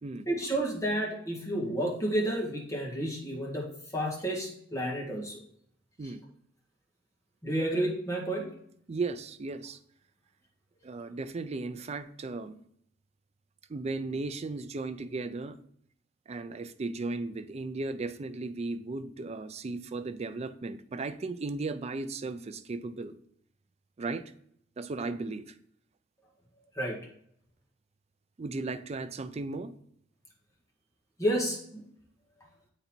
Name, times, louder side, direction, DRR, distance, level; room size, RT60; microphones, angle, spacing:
voice 1, 0.3-5.4 7.4-8.5 26.7-27.0 31.2-31.8, right 1 dB, 15° left, -2 dB, 1.7 m, -31 dB
voice 2, 8.9-9.8 10.8-12.6 13.7-15.6 16.3-23.2 24.0-24.2 24.8-25.5 28.4-29.8, right 3 dB, 35° right, 11 dB, 0.4 m, -36 dB
7.9 x 4.1 x 4.4 m, 0.67 s
head